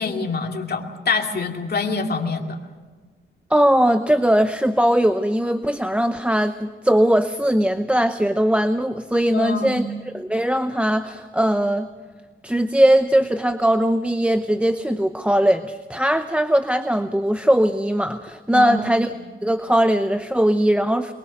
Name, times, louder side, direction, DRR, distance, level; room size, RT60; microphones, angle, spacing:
voice 1, 0.0-2.6 9.3-9.9 18.5-19.1, left 4 dB, 50° left, 3 dB, 2.4 m, -25 dB
voice 2, 3.5-11.9 12.4-19.1 19.4-21.1, right 1 dB, 5° right, 9 dB, 0.8 m, -20 dB
22.5 x 22.0 x 6.7 m, 1.5 s
cardioid pair, 90°, 21 cm